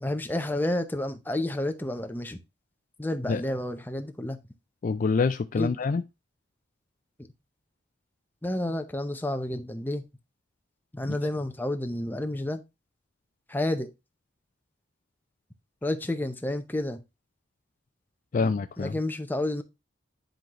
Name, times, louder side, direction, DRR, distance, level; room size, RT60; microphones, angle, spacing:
voice 1, 0.0-2.4 3.0-4.4 5.6-5.7 8.4-10.0 10.9-12.6 13.5-13.9 15.8-17.0 18.4-19.6, left 1 dB, 10° left, 0.7 m, -30 dB
voice 2, 4.8-6.0 11.1-11.2 18.3-18.9, left 4 dB, 40° left, 0.4 m, -26 dB
10.5 x 3.9 x 3.0 m
head